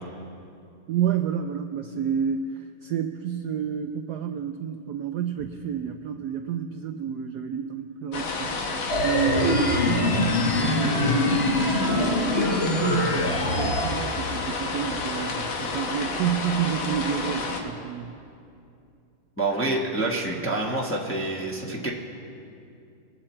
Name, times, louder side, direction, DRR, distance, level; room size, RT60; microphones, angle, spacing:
voice 1, 0.9-8.5 9.0-10.5 10.9-18.1, right 8 dB, 75° right, 6 dB, 0.9 m, -29 dB
sound 1, 8.1-17.6, left 3 dB, 80° left, 2.0 m, -30 dB
sound 2, 8.9-13.9, left 2 dB, 35° left, 1.2 m, -24 dB
voice 2, 19.4-21.9, right 2 dB, 10° left, -2 dB, 0.9 m, -27 dB
23.0 x 8.0 x 4.4 m, 2.5 s
omnidirectional pair, 2.1 m